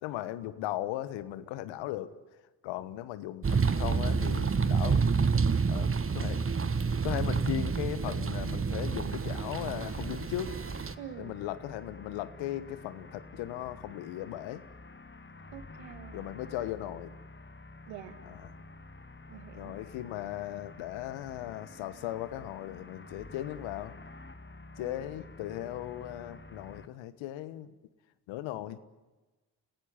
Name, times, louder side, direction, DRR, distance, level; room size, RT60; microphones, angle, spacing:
voice 1, 0.0-2.2 2.6-5.0 5.7-6.4 7.0-10.5 11.2-14.6 16.1-17.1 18.2-18.5 19.5-23.9 24.8-27.7 28.3-28.8, left 13 dB, 80° left, 14 dB, 1.4 m, -37 dB
sound 1, 3.4-10.9, right 5 dB, 30° right, 1.3 m, -28 dB
sound 2, 9.1-26.9, left 2 dB, 25° left, 2.1 m, -49 dB
voice 2, 11.0-11.4 15.5-16.3 17.9-18.2 19.3-19.8 24.8-25.1, right 11 dB, 80° right, 12 dB, 1.8 m, -46 dB
29.5 x 16.0 x 9.8 m, 1.2 s
hypercardioid pair, 45°, 45 cm